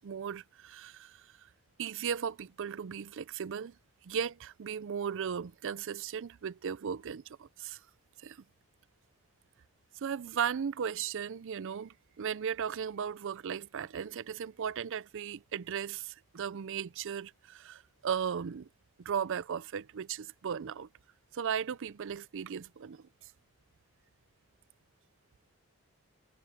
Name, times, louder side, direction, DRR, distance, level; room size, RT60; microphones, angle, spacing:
voice 1, 0.0-1.5 1.8-3.8 4.0-7.8 8.2-8.4 9.9-18.7 19.0-20.9 21.3-23.3, right 7 dB, 60° right, 0.4 m, -36 dB
head